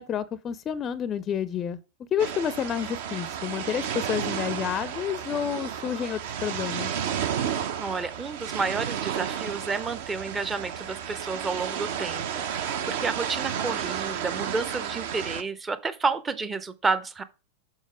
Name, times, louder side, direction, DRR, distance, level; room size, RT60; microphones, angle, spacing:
voice 1, 0.0-1.8 2.1-7.0, left 8 dB, 25° left, 0.5 m, -29 dB
sound 1, 2.2-15.4, right 8 dB, 55° right, 0.7 m, -32 dB
voice 2, 7.8-17.2, right 4 dB, 15° right, 0.6 m, -30 dB
7.3 x 4.1 x 4.8 m
figure-of-eight pair, 90°, 0 cm